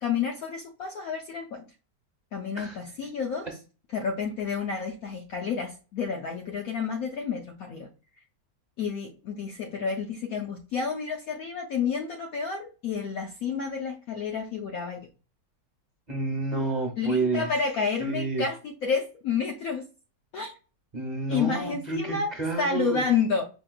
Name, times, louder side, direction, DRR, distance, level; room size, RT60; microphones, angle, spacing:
voice 1, 0.0-1.6 2.3-3.5 3.9-7.9 8.8-15.0 17.0-19.8 20.3-20.5 21.3-22.3 22.6-23.5, left 5 dB, 65° left, 1 dB, 1.0 m, -30 dB
voice 2, 16.1-17.5 18.0-18.4 20.9-23.0, right 3 dB, 40° right, 2 dB, 0.6 m, -29 dB
5.3 x 2.9 x 2.3 m, 0.34 s
omnidirectional pair, 1.8 m